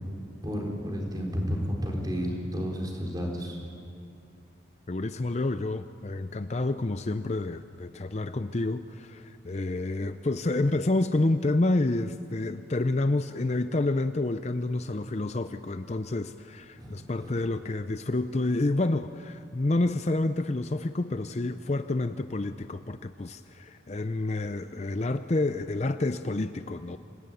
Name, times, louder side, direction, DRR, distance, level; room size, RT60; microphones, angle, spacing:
voice 1, 0.4-3.6 16.7-17.3, equal, 20° right, -1 dB, 4.2 m, -32 dB
voice 2, 4.9-27.0, left 2 dB, 35° left, 10 dB, 0.5 m, -29 dB
28.0 x 18.5 x 9.3 m, 2.5 s
head